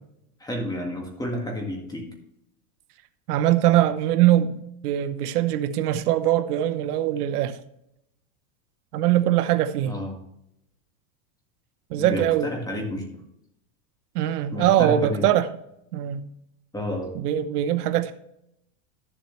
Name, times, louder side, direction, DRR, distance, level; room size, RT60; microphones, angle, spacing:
voice 1, 0.4-2.1 9.9-10.2 12.0-13.1 14.5-15.3 16.7-17.1, equal, 10° left, 1.8 m, -30 dB
voice 2, 3.3-7.6 8.9-9.9 11.9-12.5 14.1-15.5 15.9-16.3 17.1-18.1, right 12 dB, 80° right, 0.9 m, -22 dB
12.5 x 7.5 x 3.2 m
supercardioid pair, 145°, 46 cm